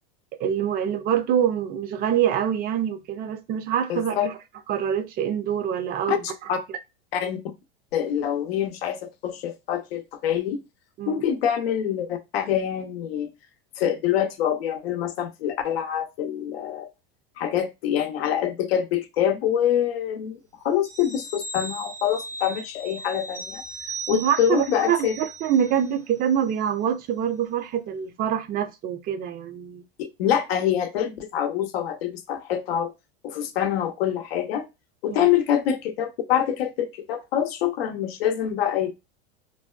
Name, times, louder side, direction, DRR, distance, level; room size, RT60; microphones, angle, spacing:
voice 1, 0.4-4.3 4.7-6.5 11.0-11.2 24.1-29.8 35.1-35.2, right 9 dB, 30° right, 0.4 m, -25 dB
voice 2, 3.9-4.3 6.1-6.2 6.5-6.6 7.1-7.4 7.9-10.6 11.1-13.3 13.8-16.9 17.4-20.4 20.6-23.6 24.1-25.2 30.0-32.9 33.2-34.7 35.0-38.9, left 10 dB, 85° left, 0.6 m, -25 dB
sound 1, 20.8-26.0 26.3-26.4, right 3 dB, 80° right, 1.2 m, -38 dB
2.6 x 2.1 x 2.3 m
supercardioid pair, 115°, 29 cm